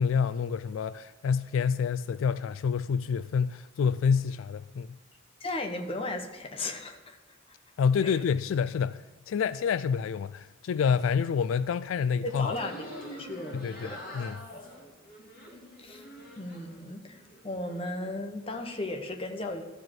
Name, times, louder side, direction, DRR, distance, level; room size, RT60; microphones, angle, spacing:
voice 1, 0.0-4.9 7.8-12.5 13.5-14.4, left 6 dB, 80° left, 0.3 m, -28 dB
voice 2, 5.4-7.2 8.0-8.2 12.2-12.8 13.1-14.1 14.5-14.6 15.8-16.0 16.4-19.6, left 2 dB, 25° left, 1.0 m, -36 dB
sound 1, 12.3-16.8 17.1-17.9, equal, 45° left, 2.8 m, -45 dB
13.0 x 5.0 x 7.7 m
head